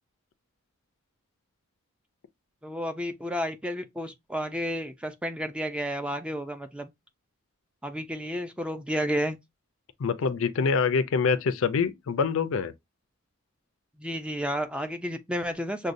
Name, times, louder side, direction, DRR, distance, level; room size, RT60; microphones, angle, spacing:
voice 1, 2.6-6.9 7.8-9.4 14.0-15.9, equal, 5° right, 0.4 m, -31 dB
voice 2, 10.0-12.7, left 5 dB, 65° left, 0.4 m, -25 dB
6.2 x 2.2 x 2.5 m
head